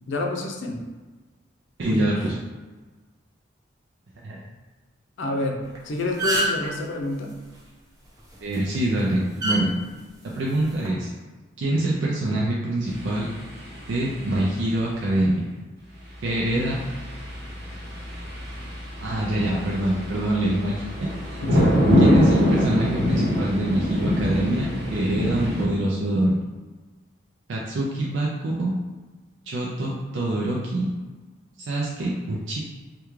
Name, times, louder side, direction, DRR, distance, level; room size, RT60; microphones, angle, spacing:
voice 1, 0.1-0.8 1.9-2.3 5.2-5.6 5.8-7.3 16.5-16.7 21.4-21.8, left 2 dB, 75° left, 2 dB, 0.5 m, -28 dB
voice 2, 1.8-2.4 4.2-4.4 8.4-9.7 10.2-11.1 11.6-13.3 13.9-15.5 16.2-16.8 19.0-21.6 22.0-26.4 27.5-28.7 29.5-30.9 31.7-32.6, right 1 dB, 70° right, -4 dB, 0.4 m, -25 dB
sound 1, 5.6-5.8 6.0-6.7 8.3-8.6 9.4-9.6 10.6-10.9, right 1 dB, 20° right, 0.6 m, -24 dB
sound 2, 12.9-14.8 16.1-25.6, equal, 55° right, 1.0 m, -24 dB
3.4 x 2.3 x 3.1 m, 1.3 s
head